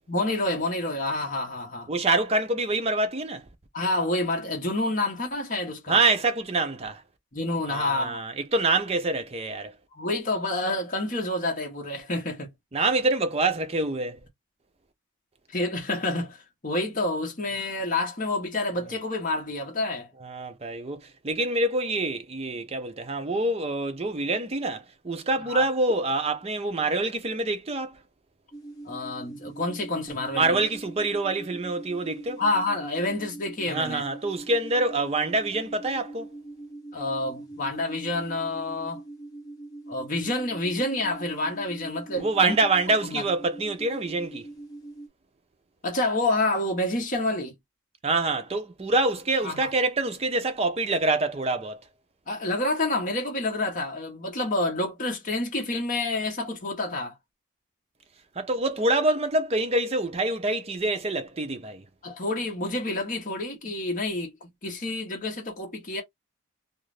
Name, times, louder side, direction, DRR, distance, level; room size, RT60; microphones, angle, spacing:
voice 1, 0.1-1.9 3.7-6.0 7.3-8.2 9.9-12.5 15.5-16.4 16.6-20.1 25.5-25.6 28.8-30.6 32.4-34.0 36.9-39.0 39.9-42.6 43.1-43.2 45.8-47.5 49.4-49.7 52.3-57.1 62.0-66.0, left 2 dB, 40° left, 1.0 m, -28 dB
voice 2, 1.9-3.4 5.9-7.0 7.7-9.7 12.7-14.2 20.2-28.0 30.3-32.4 33.7-36.3 42.1-44.5 48.0-51.8 58.4-61.8, right 2 dB, 30° right, 0.5 m, -26 dB
sound 1, 28.5-45.1, right 2 dB, 20° left, 1.3 m, -43 dB
2.5 x 2.4 x 3.2 m
head